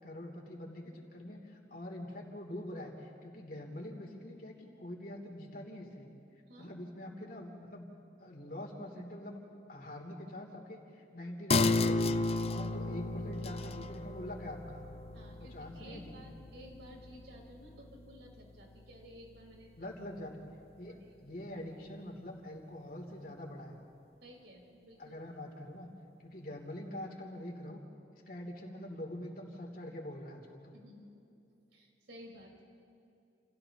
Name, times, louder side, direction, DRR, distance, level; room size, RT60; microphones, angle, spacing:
voice 1, 0.0-6.1 6.6-7.9 8.2-9.4 9.7-14.8 15.4-16.3 19.8-20.4 20.8-21.0 21.2-23.8 25.0-25.9 26.2-27.8 28.3-30.8, left 1 dB, 50° left, 0 dB, 3.1 m, -44 dB
sound 1, 11.5-18.5 18.9-19.0, left 3 dB, 35° left, 0.5 m, -34 dB
voice 2, 12.4-12.8 15.1-19.9 20.8-21.0 24.2-25.1 30.7-31.2 31.7-32.6, equal, 75° right, -1 dB, 4.6 m, -54 dB
30.0 x 29.5 x 3.0 m, 2.7 s
head